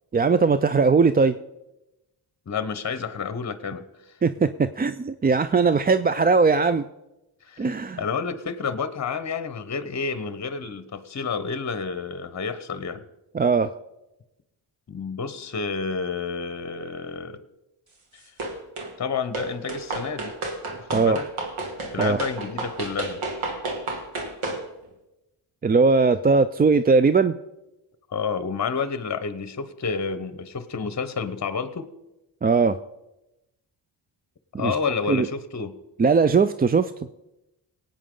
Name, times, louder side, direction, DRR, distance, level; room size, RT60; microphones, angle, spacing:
voice 1, 0.1-1.4 4.2-6.8 7.6-8.0 13.3-13.7 20.9-21.2 22.0-22.2 25.6-27.4 32.4-32.8 34.5-34.8 35.1-35.3 36.0-36.9, right 4 dB, 20° right, 12 dB, 0.4 m, -19 dB
voice 2, 2.5-4.2 7.4-7.7 8.0-13.0 14.9-17.4 18.1-18.2 19.0-20.4 20.7-21.3 21.9-23.2 28.1-31.9 34.6-35.8, left 5 dB, 35° left, 12 dB, 1.0 m, -30 dB
sound 1, 18.4-18.9 19.3-24.6, right 2 dB, 85° right, 2.3 m, -31 dB
19.0 x 8.8 x 3.8 m, 0.96 s
cardioid pair, 60°, 48 cm